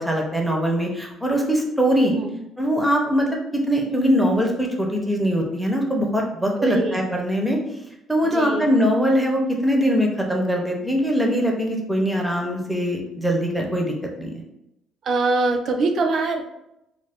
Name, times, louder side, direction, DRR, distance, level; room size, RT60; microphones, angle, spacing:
voice 1, 0.0-2.1 2.6-3.3 3.5-7.6 8.1-14.4, equal, 5° right, 1 dB, 0.6 m, -22 dB
voice 2, 6.6-7.0 8.2-8.7 15.0-16.4, right 3 dB, 55° right, 5 dB, 0.4 m, -23 dB
2.4 x 2.2 x 3.4 m, 0.86 s
cardioid pair, 110°, 0 cm